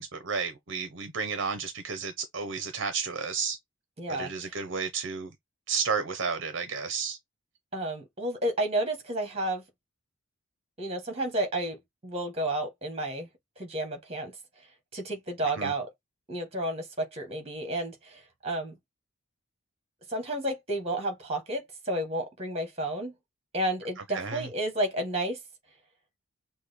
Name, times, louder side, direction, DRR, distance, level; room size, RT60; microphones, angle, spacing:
voice 1, 0.0-3.6 4.2-5.3 5.7-7.2 15.6-15.7 24.1-24.4, right 5 dB, 55° right, 0.6 m, -32 dB
voice 2, 4.0-4.6 7.7-9.6 10.8-11.8 12.0-13.3 13.6-14.3 14.9-15.9 16.3-18.7 20.1-23.1 23.5-25.4, right 1 dB, 30° right, 1.3 m, -31 dB
6.1 x 2.1 x 3.5 m
head